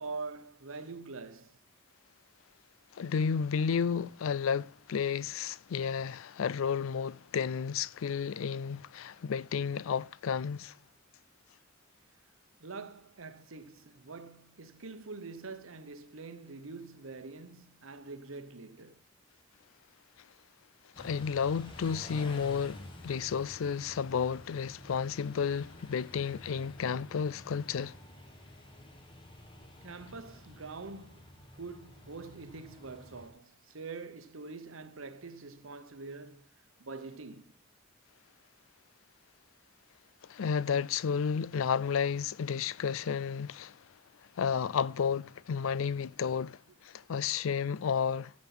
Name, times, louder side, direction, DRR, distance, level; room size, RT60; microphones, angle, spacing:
voice 1, 0.0-1.6 12.6-19.0 29.8-31.3 31.5-36.5 36.8-37.6, right 4 dB, 85° right, 1.0 m, -45 dB
voice 2, 2.9-10.8 21.0-28.0 40.2-43.8 44.4-48.3, left 6 dB, 80° left, 0.4 m, -32 dB
Car / Idling / Accelerating revving vroom, 20.9-33.3, left 1 dB, 25° left, 1.8 m, -50 dB
14.5 x 5.3 x 5.9 m
head